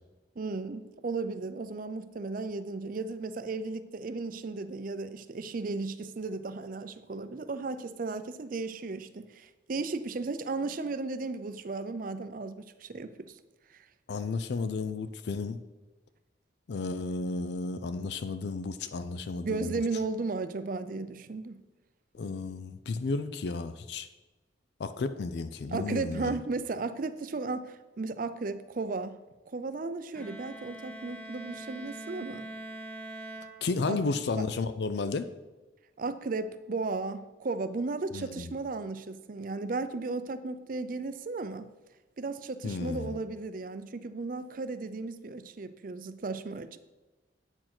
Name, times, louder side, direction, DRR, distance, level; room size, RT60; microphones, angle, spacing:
voice 1, 0.4-13.3 13.7-13.8 19.4-21.6 25.7-29.2 29.5-32.5 33.9-34.0 36.0-41.7 42.2-46.8, right 3 dB, 45° right, 12 dB, 0.5 m, -35 dB
voice 2, 14.1-15.6 16.7-19.8 22.1-24.1 24.8-26.3 33.6-35.3 38.1-38.5 42.6-43.1, left 3 dB, 60° left, 11 dB, 0.4 m, -33 dB
Bowed string instrument, 30.1-34.2, right 1 dB, 10° left, 0.8 m, -43 dB
8.7 x 4.5 x 5.9 m, 1.1 s
head